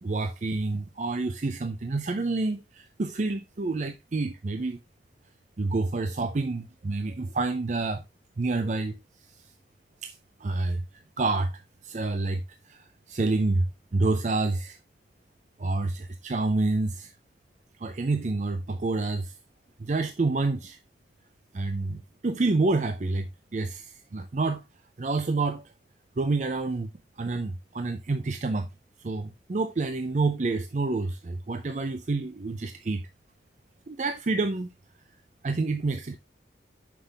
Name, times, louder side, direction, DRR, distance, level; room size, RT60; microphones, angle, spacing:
voice 1, 0.0-4.8 5.6-8.0 8.4-9.0 10.0-10.8 11.2-14.8 15.6-17.1 17.8-19.3 19.8-20.8 21.5-24.6 25.0-25.7 26.2-26.9 27.2-28.7 29.0-33.0 33.9-34.7 35.4-36.2, right 3 dB, 40° right, 0.5 m, -28 dB
5.9 x 5.6 x 3.2 m
head